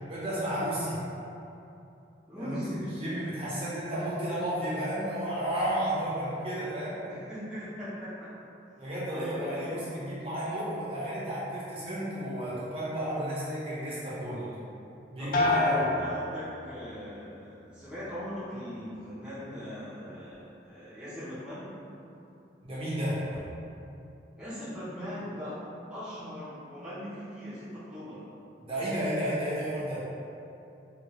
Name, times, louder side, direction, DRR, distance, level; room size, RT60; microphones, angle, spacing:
voice 1, 0.1-1.0 2.4-2.6 3.0-7.0 8.8-14.4 15.1-15.8 22.6-23.2 28.6-30.0, right 1 dB, 30° right, -10 dB, 0.9 m, -32 dB
voice 2, 2.3-2.9 7.1-8.3 8.8-9.7 14.3-14.6 15.2-21.7 24.4-25.6 25.9-28.2, equal, 5° right, -13 dB, 0.8 m, -40 dB
sound 1, 15.3-17.1 17.5-18.0, left 2 dB, 50° left, 0.4 m, -30 dB
2.9 x 2.9 x 3.0 m, 2.8 s
head